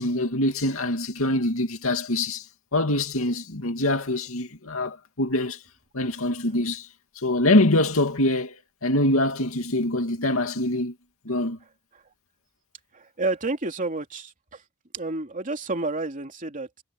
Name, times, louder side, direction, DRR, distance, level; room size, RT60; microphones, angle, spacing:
voice 1, 0.0-5.6 5.9-6.9 7.1-8.6 8.8-10.9 11.2-11.6, left 1 dB, 75° left, 2.6 m, -24 dB
voice 2, 12.9-14.6 14.9-16.8, right 2 dB, 40° right, 3.0 m, -30 dB
head